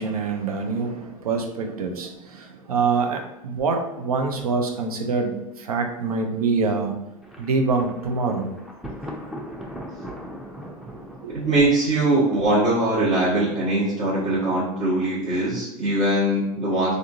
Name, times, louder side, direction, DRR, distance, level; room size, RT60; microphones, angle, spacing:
voice 1, 0.0-6.9 7.4-8.5 11.2-11.4, right 4 dB, 75° right, 4 dB, 0.6 m, -25 dB
Thunder, 7.2-13.0, equal, ahead, 0.5 m, -39 dB
voice 2, 11.3-16.9, right 1 dB, 40° right, -8 dB, 1.2 m, -21 dB
3.5 x 2.5 x 2.6 m, 0.95 s
figure-of-eight pair, 80°, 19 cm